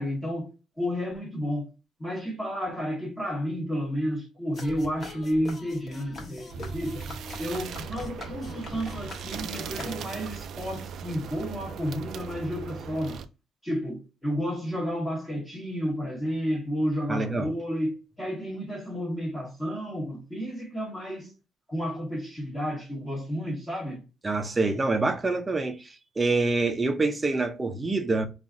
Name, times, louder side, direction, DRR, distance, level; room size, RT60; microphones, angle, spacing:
voice 1, 0.0-1.7 2.0-7.0 7.4-13.2 13.6-21.3 21.7-24.0, equal, 10° left, 1.1 m, -31 dB
sound 1, 4.5-10.4, left 2 dB, 35° left, 1.2 m, -42 dB
sound 2, 6.5-13.3, right 7 dB, 60° right, 0.3 m, -38 dB
voice 2, 17.1-17.5 24.2-28.3, right 3 dB, 15° right, 0.6 m, -26 dB
3.7 x 2.4 x 3.7 m
cardioid pair, 140°, 0 cm